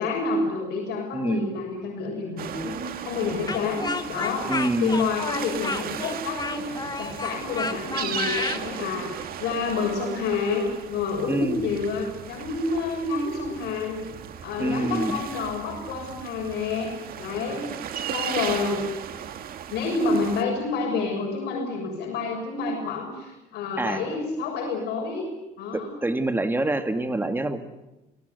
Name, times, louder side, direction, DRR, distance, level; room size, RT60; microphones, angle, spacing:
voice 1, 0.0-4.5 4.8-14.0 14.4-17.7 18.0-18.9 19.7-25.3 25.6-25.9, left 4 dB, 80° left, 0 dB, 7.1 m, -28 dB
voice 2, 1.1-1.5 4.5-5.0 11.3-11.6 14.6-15.2 23.8-24.0 25.7-27.6, right 2 dB, 10° right, 8 dB, 2.1 m, -26 dB
sound 1, 2.4-20.4, right 9 dB, 60° right, 2.1 m, -36 dB
Speech, 3.5-8.6, left 4 dB, 25° left, 1.7 m, -31 dB
29.0 x 19.5 x 8.2 m, 0.98 s
cardioid pair, 110°, 17 cm